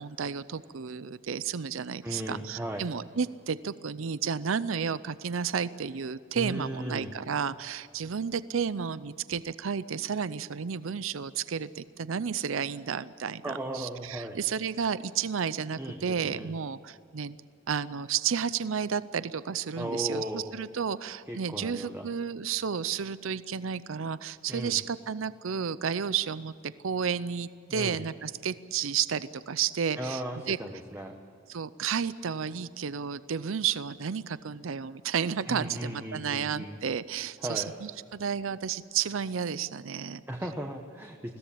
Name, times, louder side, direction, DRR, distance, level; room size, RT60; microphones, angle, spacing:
voice 1, 0.0-17.4 17.7-30.6 31.5-40.2, right 7 dB, 70° right, 16 dB, 0.6 m, -32 dB
voice 2, 2.0-2.9 6.3-7.1 13.4-14.4 15.8-16.5 19.8-20.5 21.3-22.1 24.5-24.8 27.7-28.0 30.0-31.2 35.5-36.8 37.4-37.7 40.3-41.4, right 1 dB, 10° right, 2 dB, 1.1 m, -36 dB
21.0 x 16.5 x 8.6 m, 2.4 s
head